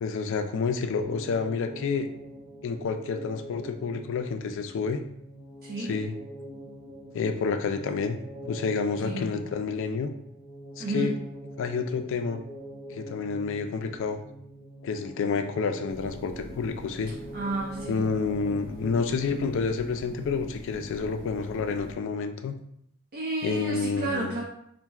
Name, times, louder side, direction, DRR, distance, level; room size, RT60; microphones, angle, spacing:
voice 1, 0.0-2.1 2.6-5.0 5.8-6.1 7.1-8.2 8.5-10.1 10.8-11.1 11.6-12.4 12.9-14.2 14.8-17.1 17.9-22.5 23.4-24.3, left 5 dB, 60° left, 7 dB, 0.3 m, -29 dB
sound 1, 0.9-19.7, equal, 90° right, 0.8 m, -44 dB
voice 2, 5.6-5.9 9.0-9.3 10.8-11.2 17.3-18.1 23.1-24.4, right 2 dB, 45° right, -3 dB, 0.5 m, -31 dB
sound 2, 15.9-21.9, equal, 5° left, 0.9 m, -44 dB
4.2 x 2.5 x 2.3 m, 0.73 s
head